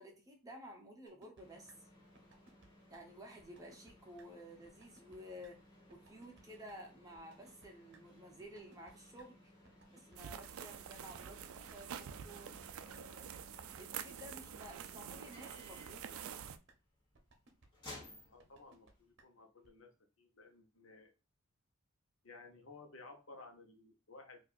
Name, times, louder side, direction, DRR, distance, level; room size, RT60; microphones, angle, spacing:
voice 1, 0.0-1.7 2.9-5.6 5.9-9.5 9.9-13.2 13.8-16.4, equal, 15° right, 1 dB, 0.7 m, -53 dB
sound 1, 1.1-1.4 1.7-1.8 2.2-2.7 2.9-3.0 3.4-3.9 4.2-4.3 4.6-5.2 5.4-5.5 5.9-6.4 6.7-6.8 7.1-7.7 7.9-8.0 8.4-9.2 9.7-10.5 10.9-11.7 12.2-12.7 12.9-13.0 13.4-13.9 14.2-14.3 14.6-15.2 15.4-15.5 15.9-16.4 16.7-16.8 17.1-17.7 17.9-18.0 18.4-18.9 19.2-19.3 19.6-19.7, right 3 dB, 55° right, 0.8 m, -63 dB
sound 2, 1.4-19.1, left 1 dB, 20° left, 1.3 m, -60 dB
sound 3, 10.2-16.6, right 8 dB, 85° right, 0.4 m, -47 dB
voice 2, 18.3-19.9 20.2-21.1 22.2-24.4, left 3 dB, 70° left, 3 dB, 0.9 m, -56 dB
4.4 x 2.5 x 2.4 m, 0.31 s
head